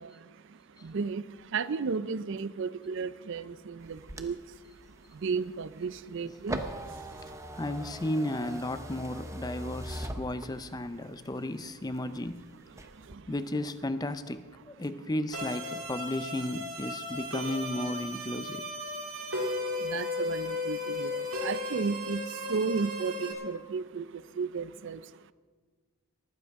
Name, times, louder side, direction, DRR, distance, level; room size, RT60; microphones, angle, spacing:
voice 1, 0.0-7.6 11.0-11.2 12.7-13.3 18.9-25.3, right 5 dB, 55° right, 0.4 m, -35 dB
sound 1, 3.8-10.9 11.3-12.3 12.7-13.1, right 1 dB, 15° right, 0.7 m, -41 dB
voice 2, 7.6-12.4 13.3-18.7, left 1 dB, 15° left, 0.5 m, -34 dB
sound 2, 15.3-23.3, left 2 dB, 80° right, 2.7 m, -35 dB
19.0 x 14.5 x 3.6 m
head